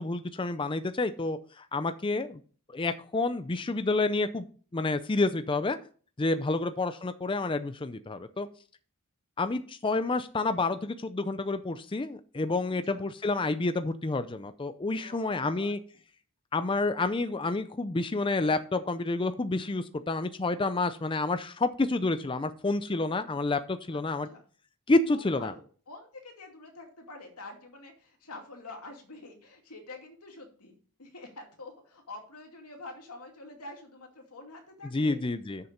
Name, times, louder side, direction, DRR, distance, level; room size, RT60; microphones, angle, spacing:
voice 1, 0.0-2.4 2.7-4.4 4.7-5.8 6.2-8.5 9.4-15.8 16.5-24.3 24.9-25.5 34.9-35.7, left 3 dB, 25° left, 10 dB, 0.5 m, -29 dB
voice 2, 15.0-15.7 23.9-24.4 25.1-35.2, left 2 dB, 90° left, 2 dB, 2.5 m, -47 dB
7.0 x 6.8 x 5.2 m, 0.43 s
head